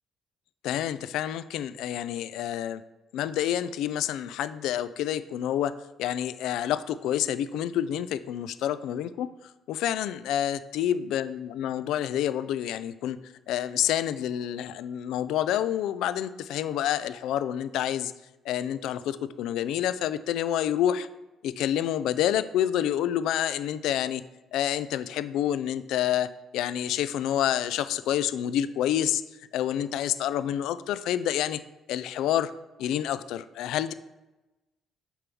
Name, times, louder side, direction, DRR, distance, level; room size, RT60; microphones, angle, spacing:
voice 1, 0.6-2.8 3.1-5.7 6.0-18.1 18.4-21.1 21.4-24.2 24.5-31.6 31.9-32.5 32.8-33.9, left 11 dB, 85° left, 15 dB, 0.3 m, -28 dB
6.8 x 4.6 x 5.3 m, 1.0 s
cardioid pair, 120°, 0 cm